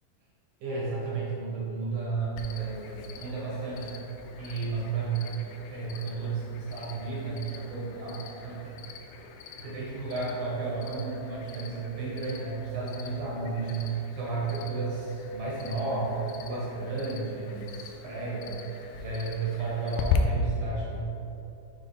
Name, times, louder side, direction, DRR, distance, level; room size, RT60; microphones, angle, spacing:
voice 1, 0.6-3.9 4.4-8.8 9.6-21.0, right 4 dB, 70° right, -5 dB, 2.0 m, -33 dB
Cricket, 2.4-20.2, left 10 dB, 85° left, 2.5 m, -41 dB
6.6 x 4.0 x 4.1 m, 2.9 s
omnidirectional pair, 4.9 m